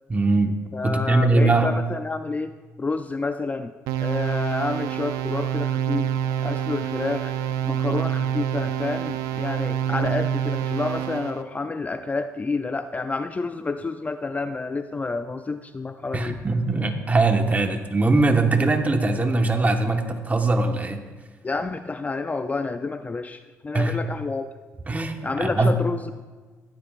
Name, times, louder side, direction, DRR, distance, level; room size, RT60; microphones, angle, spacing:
voice 1, 0.1-0.6 0.8-1.7 16.1-21.0 23.7-23.9 24.9-25.7, right 3 dB, 25° right, 5 dB, 1.4 m, -21 dB
voice 2, 0.7-3.7 4.0-6.1 6.4-7.3 7.6-16.4 21.4-24.5 25.2-26.1, left 3 dB, 25° left, 10 dB, 0.4 m, -29 dB
sound 1, 3.9-11.4, right 9 dB, 90° right, 0.6 m, -27 dB
16.0 x 12.0 x 2.5 m, 1.4 s
supercardioid pair, 80°, 6 cm